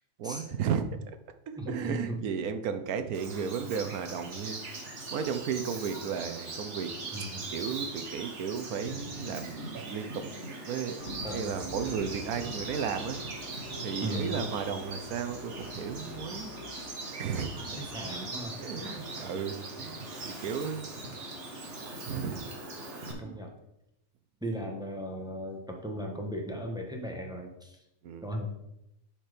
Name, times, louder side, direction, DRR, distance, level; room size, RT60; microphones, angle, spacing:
voice 1, 0.2-0.9 1.5-4.6 5.1-11.0 11.3-13.2 13.8-17.5 18.6-20.9 22.1-22.4 23.1-23.3 28.0-28.2, right 7 dB, 80° right, 9 dB, 1.3 m, -34 dB
voice 2, 1.6-2.2 7.1-7.6 11.2-11.6 13.8-14.4 17.8-19.0 23.2-23.5 24.4-27.8 28.2-28.6, equal, 5° right, 1 dB, 1.2 m, -37 dB
Bird vocalization bird call bird song, 3.1-23.1, right 2 dB, 50° right, 1.8 m, -40 dB
sound 1, 11.0-18.1, left 4 dB, 70° left, 1.4 m, -49 dB
11.0 x 4.5 x 5.0 m, 0.86 s
omnidirectional pair, 1.5 m